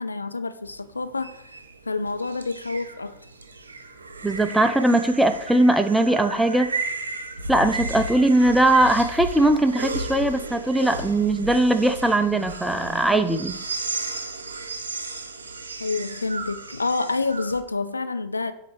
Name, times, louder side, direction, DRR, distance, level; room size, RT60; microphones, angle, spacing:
voice 1, 0.0-1.6 1.9-3.1 15.8-18.5, left 3 dB, 80° left, 0.3 m, -28 dB
sound 1, 0.6-17.6, right 3 dB, 75° right, 0.6 m, -34 dB
voice 2, 4.2-6.7 7.5-13.5, right 1 dB, 5° right, 0.5 m, -20 dB
7.4 x 2.8 x 4.8 m
figure-of-eight pair, 90°, 0 cm